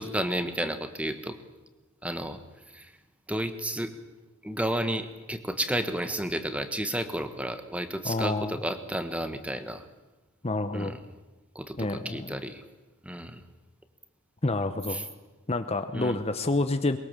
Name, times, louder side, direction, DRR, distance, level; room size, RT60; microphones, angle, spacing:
voice 1, 0.0-1.4 2.0-2.4 2.7-2.9 3.3-3.9 4.4-9.8 10.7-11.0 11.5-12.6 13.0-13.4 14.9-15.0 15.9-16.2, right 1 dB, 5° right, 9 dB, 1.3 m, -32 dB
voice 2, 8.0-8.6 10.4-11.0 11.8-12.3 14.4-15.1 15.5-17.0, left 2 dB, 30° left, 9 dB, 0.8 m, -28 dB
22.5 x 22.0 x 7.5 m, 1.1 s
head